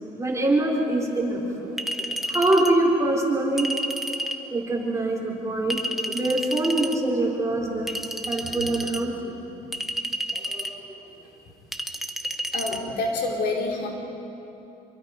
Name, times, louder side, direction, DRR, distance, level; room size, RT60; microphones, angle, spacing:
voice 1, 0.2-3.7 4.5-7.9 8.3-9.4 10.3-10.9, right 2 dB, 15° right, -2 dB, 4.3 m, -25 dB
Chink clink, 1.8-2.8 3.6-4.4 5.7-7.0 7.9-9.0 9.7-10.8 11.7-12.8, right 1 dB, ahead, 1.2 m, -30 dB
voice 2, 12.5-13.9, left 3 dB, 70° left, 0 dB, 4.1 m, -27 dB
26.0 x 22.5 x 5.2 m, 3.0 s
cardioid pair, 110°, 17 cm